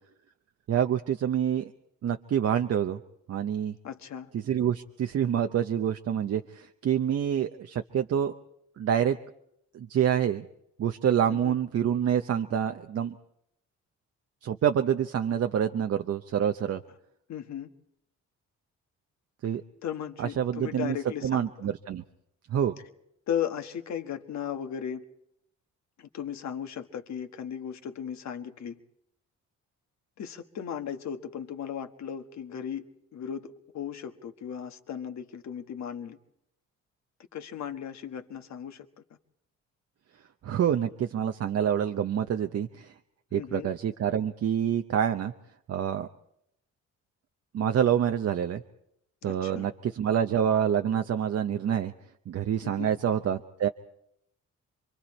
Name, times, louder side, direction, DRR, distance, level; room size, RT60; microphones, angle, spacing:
voice 1, 0.7-1.7 2.0-3.0 3.3-3.7 4.3-8.3 8.8-9.2 9.7-10.5 10.8-13.2 14.4-16.8 19.4-19.6 20.2-21.0 21.2-22.0 22.5-22.7 40.4-42.9 43.3-45.3 45.7-46.1 47.5-48.6 49.2-51.9 52.3-53.7, right 9 dB, 55° right, 6 dB, 0.8 m, -27 dB
voice 2, 3.8-4.3 11.4-11.5 17.3-17.7 19.8-21.7 23.3-25.0 26.0-28.8 30.2-32.8 33.1-36.2 37.3-38.9 43.3-43.7 49.2-49.7 52.6-52.9, left 9 dB, 65° left, 6 dB, 1.5 m, -36 dB
27.5 x 23.5 x 4.3 m, 0.77 s
cardioid pair, 90°, 30 cm